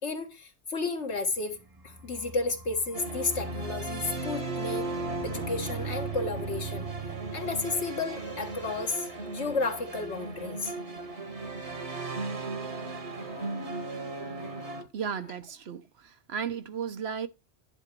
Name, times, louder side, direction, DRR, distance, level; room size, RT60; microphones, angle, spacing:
voice 1, 0.0-1.6 1.8-4.9 5.2-6.9 7.3-10.7, left 3 dB, 80° left, 1.9 m, -32 dB
sound 1, 1.0-10.7 11.0-11.1 11.4-11.9, left 1 dB, 25° right, 0.6 m, -48 dB
sound 2, 2.9-14.8, right 3 dB, 90° right, 2.3 m, -36 dB
voice 2, 14.9-17.3, right 7 dB, 70° right, 1.1 m, -35 dB
10.5 x 5.0 x 4.5 m
omnidirectional pair, 1.1 m